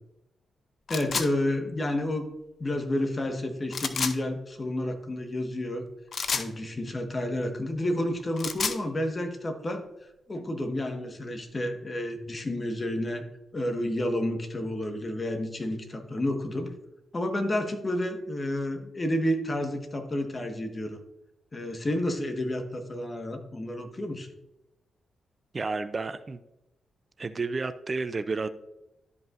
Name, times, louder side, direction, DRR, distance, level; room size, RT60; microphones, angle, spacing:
sound 1, 0.9-1.3 3.7-4.2 6.1-6.5 8.2-8.8, left 5 dB, 60° left, 0.6 m, -29 dB
voice 1, 0.9-2.3 2.6-5.8 6.3-9.9 10.3-13.2 13.5-16.7 17.1-21.0 21.5-24.3, left 1 dB, 35° left, 5 dB, 1.4 m, -30 dB
voice 2, 25.5-26.4 27.2-28.5, right 3 dB, 45° right, 12 dB, 0.5 m, -31 dB
12.5 x 5.3 x 2.6 m, 0.93 s
hypercardioid pair, 40°, 0 cm